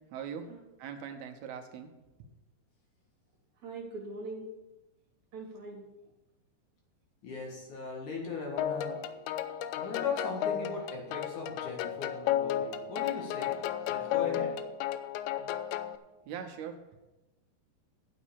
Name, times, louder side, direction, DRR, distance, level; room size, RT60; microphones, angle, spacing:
voice 1, 0.1-0.5 0.8-1.9 2.2-2.3 16.3-16.8, right 8 dB, 80° right, 5 dB, 2.9 m, -41 dB
voice 2, 3.6-4.5 5.3-5.8 15.4-15.5, right 2 dB, 50° right, 0 dB, 2.8 m, -42 dB
voice 3, 7.2-9.0 9.8-13.6 13.9-14.5, left 4 dB, 55° left, 0 dB, 2.9 m, -38 dB
sound 1, 8.6-16.0, left 11 dB, 85° left, 2.5 m, -33 dB
10.0 x 7.4 x 6.9 m, 1.0 s
omnidirectional pair, 4.6 m